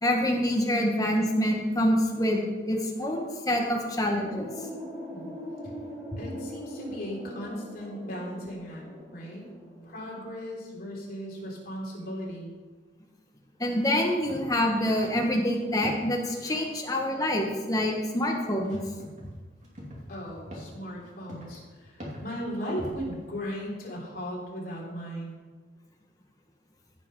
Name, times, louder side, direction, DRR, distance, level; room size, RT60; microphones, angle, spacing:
voice 1, 0.0-4.5 13.6-18.8, left 1 dB, 20° left, 1 dB, 1.5 m, -26 dB
sound 1, 4.3-10.2, equal, 5° left, 2.3 m, -41 dB
voice 2, 6.2-9.5 9.8-12.5 20.1-25.3, equal, 50° left, -4 dB, 3.7 m, -37 dB
sound 2, 14.1-15.3 15.6-16.7 18.6-19.3 19.6-23.2, equal, 40° right, 2.5 m, -43 dB
15.0 x 5.9 x 5.6 m, 1.4 s
head